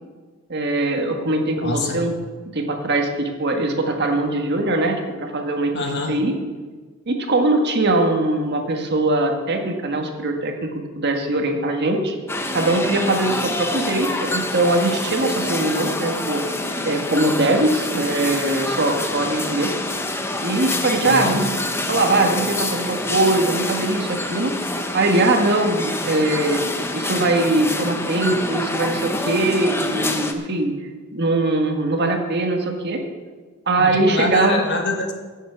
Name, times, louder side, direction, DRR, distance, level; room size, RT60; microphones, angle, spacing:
voice 1, 0.5-2.1 2.5-5.7 6.1-6.4 7.1-12.1 12.5-16.4 16.8-19.7 20.4-21.5 21.9-24.5 24.9-26.6 26.9-30.7 31.1-33.0 33.7-34.6, right 2 dB, 50° right, 4 dB, 1.6 m, -21 dB
voice 2, 1.6-2.0 5.7-6.2 21.1-21.4 33.8-35.1, left 2 dB, 55° left, 4 dB, 1.6 m, -25 dB
sound 1, 12.3-30.3, left 2 dB, 10° left, 0.8 m, -26 dB
15.5 x 7.3 x 5.8 m, 1.4 s
head